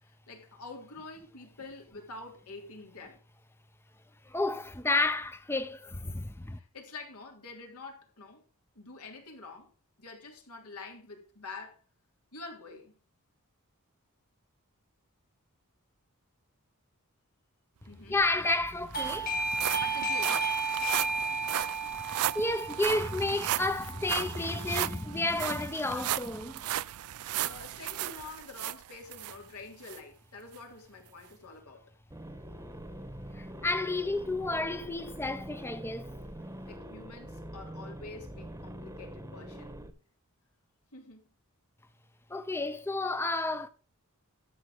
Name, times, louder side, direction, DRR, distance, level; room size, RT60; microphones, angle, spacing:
voice 1, 0.0-3.2 6.5-8.4 8.7-9.7 10.0-11.8 12.3-13.0 17.9-18.2 19.8-20.4 27.3-31.9 36.7-39.8 40.9-41.3, left 3 dB, 85° left, 3.3 m, -47 dB
voice 2, 4.3-6.6 18.1-19.4 21.9-26.6 33.3-36.1 42.3-43.7, left 2 dB, 10° left, 0.6 m, -31 dB
sound 1, 18.1-18.2 18.5-29.4 29.9-30.0 30.5-30.6, right 12 dB, 75° right, 0.4 m, -35 dB
Doorbell, 18.9-25.4, right 3 dB, 40° left, 1.2 m, -34 dB
sound 2, 32.1-39.9, equal, 15° right, 1.0 m, -44 dB
12.5 x 6.6 x 5.0 m
head